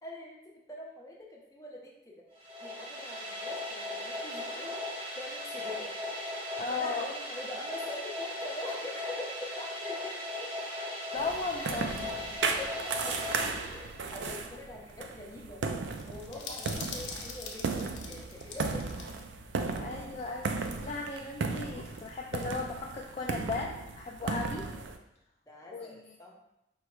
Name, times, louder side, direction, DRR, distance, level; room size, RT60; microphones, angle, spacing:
voice 1, 0.0-2.3 2.6-4.8 5.2-5.9 6.7-10.5 11.6-11.8 12.4-15.6 16.1-19.1 24.5-24.8 25.5-26.4, left 1 dB, 20° left, -3 dB, 0.7 m, -44 dB
sound 1, 2.3-14.3, left 1 dB, 35° right, 0.8 m, -38 dB
voice 2, 6.6-7.1 11.1-11.9 16.5-16.6 19.8-24.7 25.7-26.0, left 3 dB, 35° left, -1 dB, 0.3 m, -36 dB
sound 2, 11.2-25.0, right 4 dB, 75° right, 0.4 m, -36 dB
sound 3, 16.0-19.2 19.5-19.6 20.6-22.0, left 4 dB, 90° left, 0.7 m, -44 dB
4.6 x 2.1 x 4.5 m, 0.86 s
head